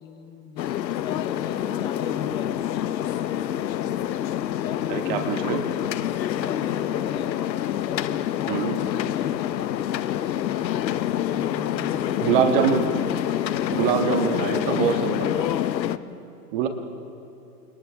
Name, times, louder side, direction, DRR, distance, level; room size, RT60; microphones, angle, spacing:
voice 1, 0.0-2.9 4.6-5.3 6.2-7.3 7.6-9.8 11.3-12.7 13.3-15.2 15.8-16.2, left 5 dB, 10° left, 5 dB, 0.6 m, -39 dB
sound 1, 0.6-16.0, left 11 dB, 90° left, 0.9 m, -27 dB
voice 2, 4.9-5.6 8.5-8.8 12.2-12.9 13.7-15.4 16.5-16.7, right 8 dB, 30° right, 5 dB, 1.5 m, -24 dB
29.0 x 27.5 x 3.5 m, 2.9 s
hypercardioid pair, 160°, 49 cm